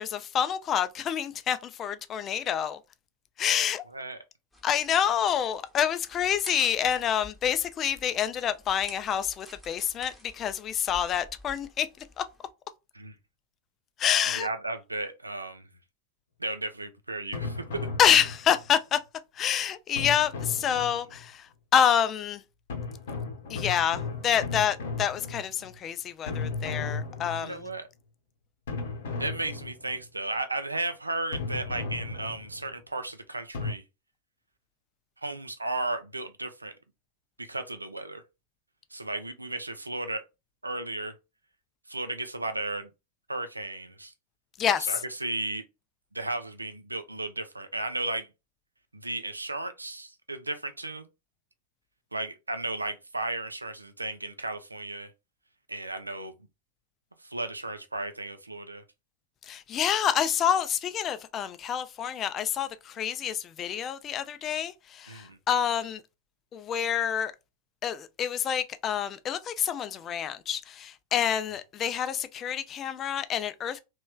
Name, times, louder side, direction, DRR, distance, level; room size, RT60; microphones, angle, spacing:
voice 1, 0.0-2.8 3.4-3.8 4.6-11.9 12.2-12.3 14.0-14.5 18.0-19.0 19.4-22.4 23.5-27.7 44.6-44.9 59.4-66.0 66.5-67.3 67.8-73.8, left 9 dB, 30° left, 0.4 m, -27 dB
sound 1, 4.5-12.5, left 1 dB, 5° left, 0.9 m, -50 dB
voice 2, 14.3-15.7 16.4-17.6 20.8-21.0 27.4-27.9 29.2-33.8 35.2-36.7 37.4-38.2 38.9-40.2 40.6-41.1 41.9-42.9 43.3-44.1 44.8-45.6 46.1-48.3 48.9-51.1 52.1-55.1 55.7-56.3 57.2-58.8 65.1-65.4, right 2 dB, 80° right, 0.5 m, -34 dB
sound 2, 17.3-18.7 20.0-21.3 22.7-25.8 26.3-27.8 28.7-30.1 31.3-32.7 33.5-33.7, left 4 dB, 60° left, 0.8 m, -35 dB
3.1 x 3.0 x 2.3 m
figure-of-eight pair, 90°, 0 cm